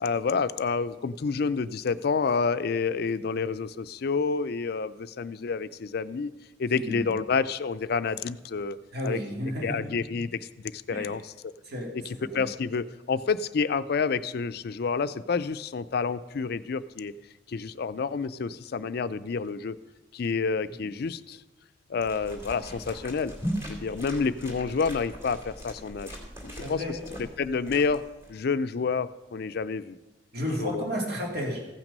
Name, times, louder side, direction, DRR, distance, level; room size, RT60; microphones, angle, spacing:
voice 1, 0.0-6.3 6.6-8.8 9.0-9.2 9.6-11.5 11.9-17.1 17.5-19.8 20.1-21.4 21.9-23.3 23.7-26.1 26.4-28.0 28.3-30.0 30.6-30.8, left 5 dB, 60° left, 14 dB, 0.4 m, -29 dB
voice 2, 6.7-7.0 8.9-9.9 10.9-11.1 11.7-12.4 20.8-20.9 26.6-26.9 30.3-31.7, equal, 60° right, 0 dB, 2.3 m, -32 dB
sound 1, 22.0-28.3, equal, 15° right, 2.5 m, -39 dB
15.0 x 6.0 x 5.3 m, 1.1 s
head